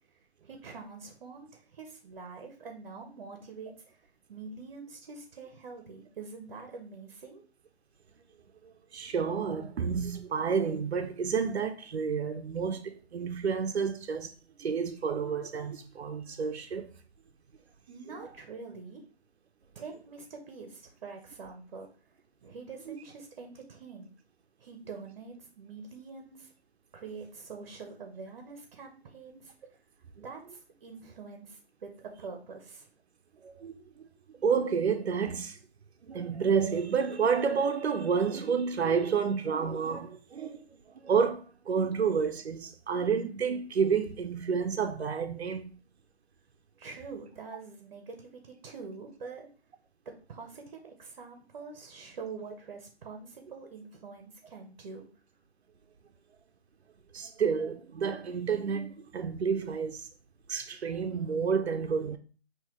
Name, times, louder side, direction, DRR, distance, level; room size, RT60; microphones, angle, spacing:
voice 1, 0.4-7.4 17.9-19.0 19.7-21.9 22.4-24.1 24.6-26.5 26.9-29.5 30.1-32.9 46.8-49.5 50.0-55.1, right 4 dB, 45° right, 0.9 m, -45 dB
voice 2, 8.6-14.3 14.6-16.9 22.9-23.0 33.4-34.1 34.4-35.6 36.0-45.7 57.1-60.1 60.5-62.2, right 6 dB, 75° right, 0.6 m, -30 dB
5.5 x 2.9 x 3.0 m
figure-of-eight pair, 145°, 32 cm